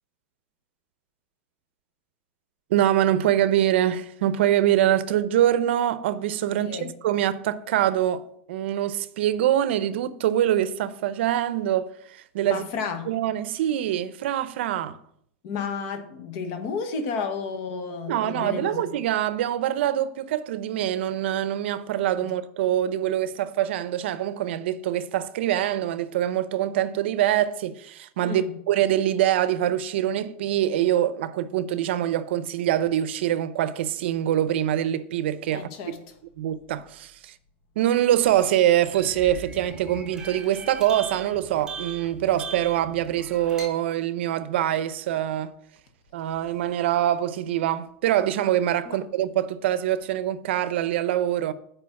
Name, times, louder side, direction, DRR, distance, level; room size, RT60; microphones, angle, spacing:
voice 1, 2.7-12.6 13.1-15.0 18.1-35.7 36.4-37.3 37.8-45.5 46.1-51.5, right 12 dB, 65° right, 0.6 m, -24 dB
voice 2, 6.6-6.9 12.5-13.1 15.4-18.9 22.2-22.3 28.2-28.6 35.5-36.1 48.8-49.0, left 5 dB, 40° left, 1.2 m, -32 dB
sound 1, 38.2-43.7, right 5 dB, 10° right, 1.0 m, -39 dB
8.6 x 5.1 x 5.8 m
supercardioid pair, 170°, 7 cm